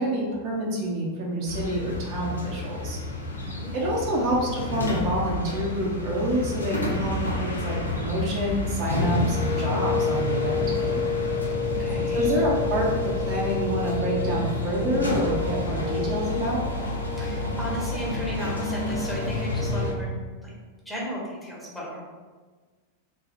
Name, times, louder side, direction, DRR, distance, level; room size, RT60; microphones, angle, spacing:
voice 1, 0.0-3.0 3.7-11.0 12.1-16.6, right 1 dB, 45° right, -4 dB, 0.8 m, -27 dB
sound 1, 1.5-19.9, left 2 dB, 80° left, 0.5 m, -28 dB
voice 2, 3.3-3.9 11.6-12.3 17.2-20.1 20.4-20.5 20.8-22.0, equal, ahead, -6 dB, 1.0 m, -35 dB
3.3 x 2.3 x 4.2 m, 1.4 s
figure-of-eight pair, 90°, 0 cm